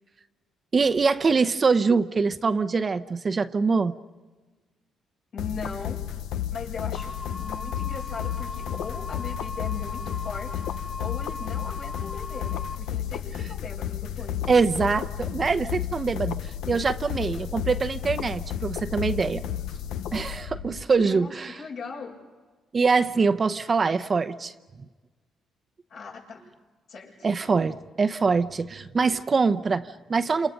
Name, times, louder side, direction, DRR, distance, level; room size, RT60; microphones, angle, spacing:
voice 1, 0.7-3.9 14.5-19.4 20.1-21.6 22.7-24.5 27.2-30.5, right 4 dB, 35° right, 11 dB, 0.8 m, -24 dB
voice 2, 5.3-6.0 6.5-14.4 20.9-22.2 25.9-26.4 26.9-27.3, left 5 dB, 70° left, -3 dB, 7.5 m, -39 dB
sound 1, 5.4-20.8, left 10 dB, 85° left, 0.7 m, -32 dB
sound 2, 7.0-12.8, left 3 dB, 30° left, 3.1 m, -38 dB
28.5 x 28.0 x 5.3 m, 1.3 s
cardioid pair, 90°, 0 cm